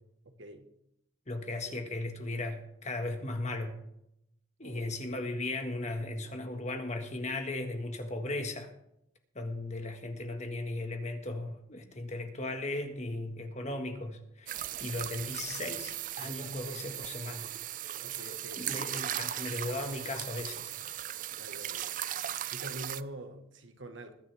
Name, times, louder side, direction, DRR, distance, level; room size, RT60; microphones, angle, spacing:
voice 1, 0.2-0.7 1.6-1.8 4.6-4.9 18.0-18.7 21.3-22.0 22.5-24.1, right 1 dB, 65° right, 1.4 m, -45 dB
voice 2, 1.3-3.8 4.6-8.7 9.3-17.5 18.6-20.7, left 2 dB, 35° left, 1.6 m, -37 dB
sound 1, 14.5-23.0, right 12 dB, 40° right, 0.3 m, -38 dB
21.0 x 9.9 x 3.5 m
head